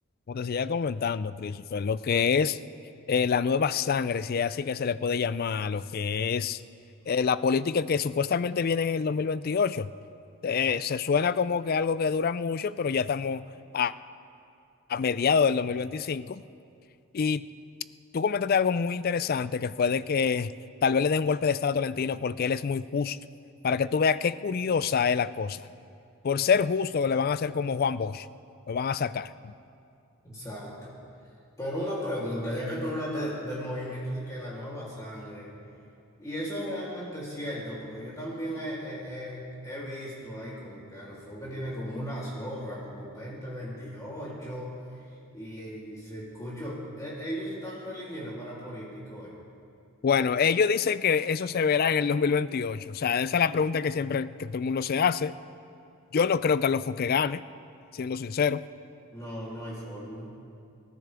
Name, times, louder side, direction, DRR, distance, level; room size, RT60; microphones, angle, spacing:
voice 1, 0.3-2.6 3.1-6.6 7.1-9.9 10.4-13.4 13.7-13.9 14.9-16.4 17.1-17.4 18.1-20.5 20.8-23.2 23.6-25.7 26.2-28.3 28.7-29.5 50.0-55.3 56.1-57.4 57.9-58.6, left 6 dB, 40° left, 16 dB, 0.3 m, -26 dB
voice 2, 30.2-30.9 31.6-35.5 36.2-49.4 59.1-60.4, equal, 15° left, -8 dB, 3.2 m, -36 dB
26.0 x 14.0 x 3.5 m, 2.5 s
head